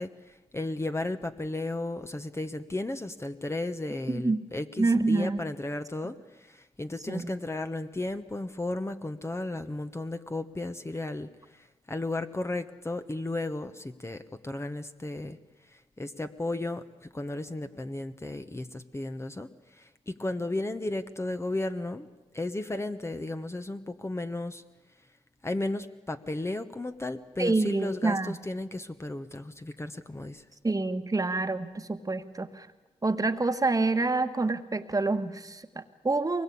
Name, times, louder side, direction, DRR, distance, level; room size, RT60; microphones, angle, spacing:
voice 1, 0.0-15.4 15.7-24.6 25.4-30.4, left 2 dB, 20° left, 8 dB, 1.2 m, -34 dB
voice 2, 4.1-4.4 4.8-5.4 7.1-7.3 27.4-28.4 30.6-32.7 33.0-36.4, right 3 dB, 30° right, 9 dB, 1.5 m, -27 dB
23.0 x 20.5 x 8.6 m, 1.1 s
supercardioid pair, 50°, 13 cm